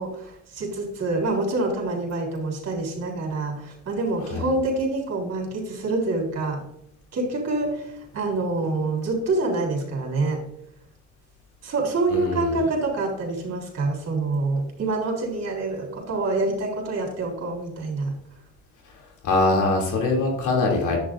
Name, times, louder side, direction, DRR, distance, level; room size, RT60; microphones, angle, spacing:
voice 1, 0.0-6.6 7.1-10.4 11.6-18.1, right 2 dB, 55° right, 0 dB, 3.6 m, -26 dB
voice 2, 12.1-12.5 19.2-21.0, left 3 dB, 80° left, -1 dB, 2.9 m, -22 dB
11.0 x 8.4 x 2.6 m, 0.76 s
cardioid pair, 90°, 30 cm